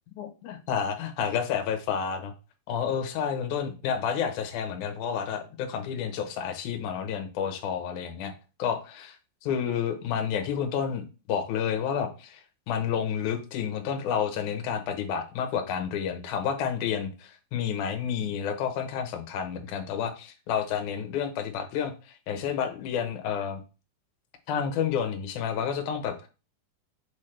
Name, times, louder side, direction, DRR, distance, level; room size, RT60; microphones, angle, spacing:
voice 1, 0.2-2.3 2.7-8.3 8.6-9.2 9.4-23.6 24.5-26.3, left 7 dB, 70° left, 5 dB, 1.9 m, -30 dB
7.3 x 4.1 x 3.3 m, 0.32 s
omnidirectional pair, 4.6 m